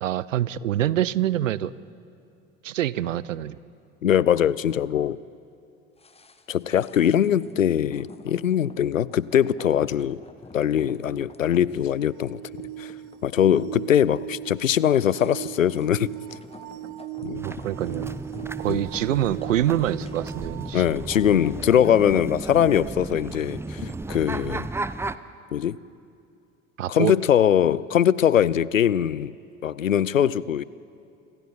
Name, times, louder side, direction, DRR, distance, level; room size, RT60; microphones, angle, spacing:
voice 1, 0.0-1.7 2.6-3.6 17.4-18.1 18.6-20.8 26.8-27.1, right 12 dB, 75° right, 20 dB, 0.7 m, -25 dB
voice 2, 4.0-5.2 6.5-10.2 10.5-12.4 12.8-12.9 13.2-16.1 17.2-17.4 18.7-18.8 20.7-24.7 25.5-25.8 26.9-29.3 29.6-30.6, left 9 dB, 90° left, 21 dB, 0.5 m, -22 dB
sound 1, 6.0-23.2 23.5-23.6, left 4 dB, 15° left, 1.3 m, -49 dB
sound 2, 11.8-21.6 23.9-24.0, right 14 dB, 50° right, 0.9 m, -39 dB
sound 3, 17.4-25.2, right 2 dB, 5° right, 0.6 m, -34 dB
28.5 x 26.5 x 4.3 m, 2.5 s
figure-of-eight pair, 65°, 38 cm